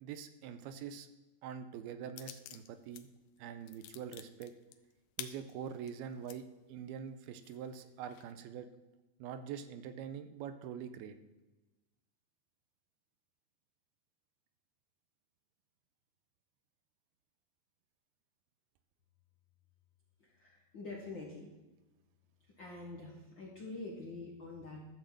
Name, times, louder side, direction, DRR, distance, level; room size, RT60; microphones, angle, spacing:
voice 1, 0.0-1.1 1.4-3.1 3.4-4.5 5.2-8.7 9.2-11.2, right 8 dB, 85° right, 10 dB, 2.6 m, -44 dB
sound 1, 2.2-3.0 3.4-6.4 6.9-7.0 7.4-8.3, left 9 dB, 80° left, 2.4 m, -52 dB
voice 2, 20.2-21.4 22.6-24.8, left 3 dB, 55° left, -3 dB, 1.3 m, -46 dB
12.0 x 6.7 x 7.6 m, 1.1 s
omnidirectional pair, 4.5 m